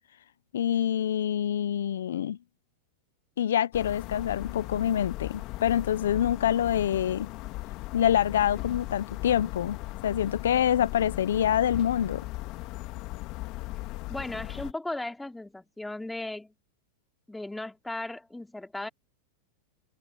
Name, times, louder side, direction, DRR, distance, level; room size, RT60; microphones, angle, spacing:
voice 1, 0.5-2.4 3.4-7.3 7.9-9.8 10.0-12.3, left 10 dB, 85° left, 0.5 m, -26 dB
sound 1, 3.7-14.7, left 19 dB, 50° left, 1.8 m, -38 dB
voice 2, 14.1-16.5 17.3-18.9, left 2 dB, 5° left, 2.6 m, -36 dB
hypercardioid pair, 120°, 0 cm